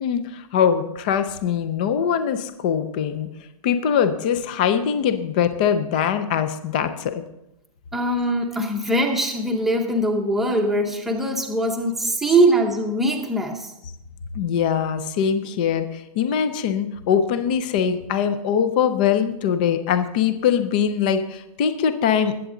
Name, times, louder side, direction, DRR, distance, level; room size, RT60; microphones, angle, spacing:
voice 1, 0.0-3.3 3.6-7.2 14.3-22.3, left 8 dB, 15° left, 11 dB, 0.3 m, -22 dB
voice 2, 7.9-13.7, right 1 dB, ahead, 2 dB, 0.7 m, -22 dB
20.5 x 8.0 x 3.7 m, 0.84 s
hypercardioid pair, 170°, 19 cm